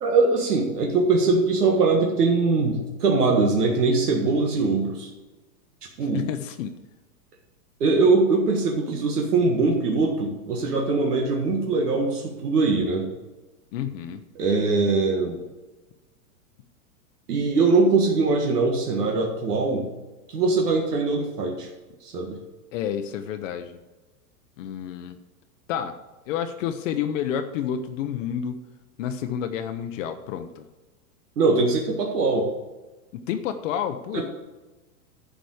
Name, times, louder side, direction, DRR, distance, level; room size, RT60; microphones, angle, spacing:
voice 1, 0.0-5.1 6.0-6.3 7.8-13.1 14.3-15.4 17.3-19.9 20.3-21.7 22.0-22.4 31.4-32.5 34.1-34.2, right 3 dB, 85° right, 1 dB, 1.7 m, -22 dB
voice 2, 6.1-6.8 13.7-14.2 22.7-23.8 24.6-25.2 25.7-26.0 26.3-28.6 29.0-30.6 33.1-34.2, left 9 dB, 55° left, 8 dB, 0.8 m, -29 dB
10.0 x 5.1 x 6.4 m, 1.2 s
hypercardioid pair, 120°, 46 cm